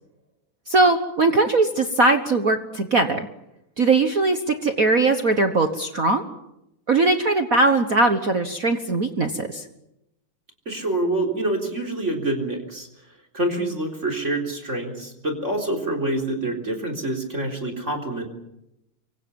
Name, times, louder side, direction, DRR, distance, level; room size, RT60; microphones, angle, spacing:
voice 1, 0.7-3.3 3.8-6.2 6.9-9.6, right 3 dB, 60° right, 7 dB, 0.9 m, -20 dB
voice 2, 10.7-12.9 13.3-18.3, right 1 dB, 20° right, 6 dB, 3.9 m, -26 dB
26.5 x 23.5 x 7.1 m, 0.87 s
omnidirectional pair, 3.5 m